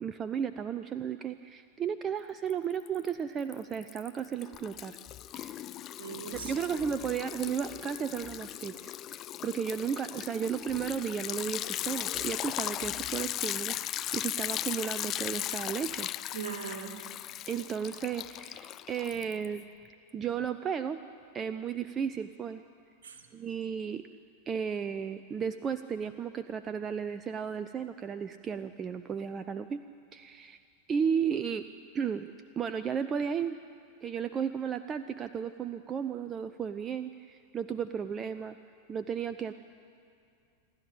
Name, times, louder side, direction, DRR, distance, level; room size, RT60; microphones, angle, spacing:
voice 1, 0.0-5.0 5.3-5.6 6.3-16.1 17.5-19.7 20.1-21.0 21.3-22.6 23.3-24.0 24.5-29.8 30.1-30.6 30.9-31.7 31.9-33.6 34.0-38.6 38.9-39.5, right 7 dB, 25° right, 12 dB, 0.6 m, -34 dB
Liquid, 2.5-3.1 3.4-19.6, left 12 dB, 30° left, 0.4 m, -37 dB
voice 2, 6.0-6.8 16.3-17.2 23.0-23.3, right 7 dB, 60° right, 5 dB, 2.5 m, -41 dB
27.5 x 12.0 x 8.9 m, 2.4 s
figure-of-eight pair, 90°, 0 cm